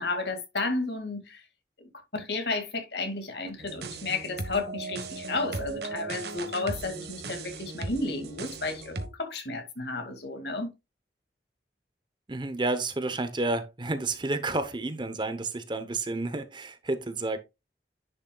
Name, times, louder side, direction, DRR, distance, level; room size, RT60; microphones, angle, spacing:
voice 1, 0.0-1.4 1.8-10.7, left 3 dB, 70° left, 2.1 m, -32 dB
sound 1, 3.6-9.1, right 3 dB, 65° right, 1.3 m, -37 dB
voice 2, 12.3-17.4, right 2 dB, 25° right, 0.8 m, -30 dB
10.5 x 6.3 x 2.3 m
head